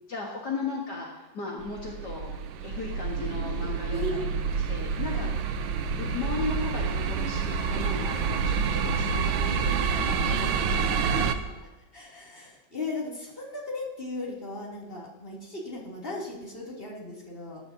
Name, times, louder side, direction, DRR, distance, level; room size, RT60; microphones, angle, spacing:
voice 1, 0.1-2.3 2.6-4.2 4.7-5.5 6.0-11.6, left 4 dB, 60° left, -2 dB, 2.2 m, -36 dB
sound 1, 1.6-11.3, right 5 dB, 90° right, 1.6 m, -28 dB
voice 2, 3.9-4.2 4.5-4.6 5.1-5.4 10.9-11.1 11.9-17.6, left 1 dB, 30° left, -5 dB, 3.5 m, -37 dB
20.5 x 11.0 x 2.9 m, 1.1 s
omnidirectional pair, 2.0 m